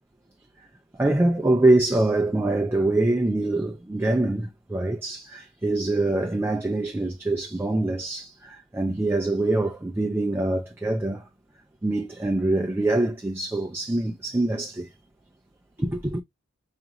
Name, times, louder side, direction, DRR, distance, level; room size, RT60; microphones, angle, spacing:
voice 1, 1.0-11.2 11.8-14.9 15.8-16.2, right 2 dB, 10° right, 0.3 m, -24 dB
4.8 x 2.5 x 2.8 m
head